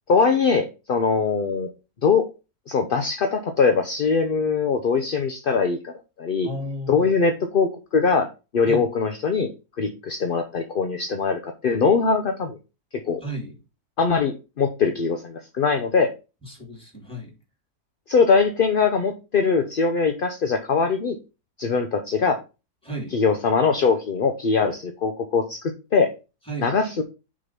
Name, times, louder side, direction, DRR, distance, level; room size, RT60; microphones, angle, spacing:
voice 1, 0.1-1.7 2.0-2.3 2.7-6.5 6.9-8.3 8.5-9.5 9.8-12.6 13.1-13.2 14.0-16.1 18.1-21.2 21.6-22.4 23.1-26.1 26.6-27.0, left 5 dB, 45° left, 6 dB, 0.7 m, -22 dB
voice 2, 6.4-7.1 8.6-8.8 13.2-13.6 16.4-17.3 22.8-23.2 26.5-26.8, right 1 dB, 5° left, 0 dB, 3.1 m, -33 dB
6.2 x 3.9 x 5.7 m, 0.29 s
omnidirectional pair, 1.7 m